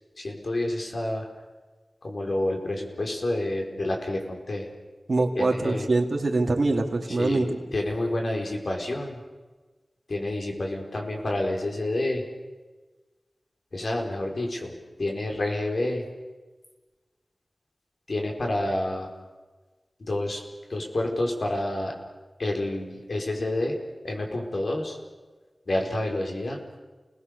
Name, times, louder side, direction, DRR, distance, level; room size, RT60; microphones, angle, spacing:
voice 1, 0.2-1.2 2.0-4.7 5.4-5.9 7.1-7.4 7.7-9.2 10.1-12.2 13.7-14.7 15.0-16.0 18.1-19.1 20.0-20.4 20.7-21.9 22.4-23.8 24.0-25.0 25.7-26.6, left 1 dB, 65° left, 1 dB, 4.9 m, -28 dB
voice 2, 5.1-7.5, right 2 dB, 60° right, 3 dB, 2.8 m, -24 dB
29.5 x 20.0 x 6.8 m, 1.3 s
wide cardioid pair, 75°, 0 cm